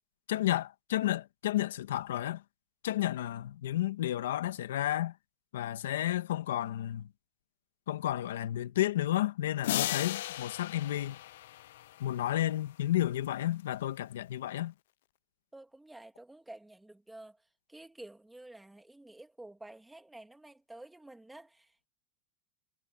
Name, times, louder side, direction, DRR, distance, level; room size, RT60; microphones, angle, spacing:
voice 1, 0.3-2.4 2.8-5.1 5.5-7.1 7.9-11.2 12.0-14.7, left 13 dB, 90° left, 1.6 m, -32 dB
sound 1, 9.6-12.4, left 14 dB, 65° left, 0.4 m, -36 dB
voice 2, 15.5-17.4 17.7-21.9, right 2 dB, 5° right, 2.0 m, -51 dB
supercardioid pair, 180°, 0 cm